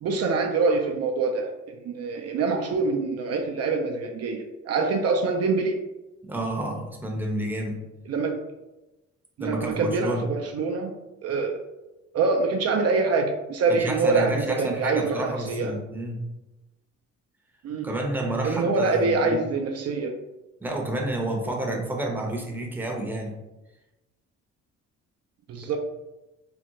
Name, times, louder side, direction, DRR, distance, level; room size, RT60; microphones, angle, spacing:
voice 1, 0.0-5.8 8.1-8.4 9.4-10.9 11.2-11.6 12.1-15.7 17.6-17.9 18.4-20.1 25.5-25.8, right 4 dB, 55° right, 3 dB, 0.4 m, -25 dB
voice 2, 6.3-7.8 9.4-10.2 13.7-16.2 17.8-19.4 20.6-23.3, right 1 dB, 5° right, 0 dB, 0.6 m, -30 dB
3.6 x 2.1 x 2.9 m, 1.0 s
cardioid pair, 90°, 30 cm